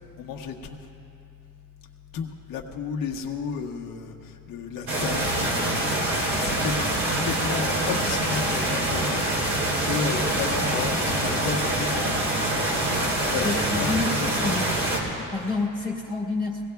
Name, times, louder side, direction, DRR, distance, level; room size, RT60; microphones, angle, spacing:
voice 1, 0.2-0.8 2.1-12.5 13.3-14.5 15.1-15.3, left 6 dB, 80° left, 0 dB, 1.2 m, -33 dB
sound 1, 4.9-15.0, right 1 dB, 55° right, 3.2 m, -25 dB
voice 2, 13.4-14.2 14.4-14.7 15.3-16.6, left 3 dB, 15° right, -3 dB, 1.8 m, -28 dB
22.5 x 17.5 x 2.3 m, 2.6 s
cardioid pair, 165°, 33 cm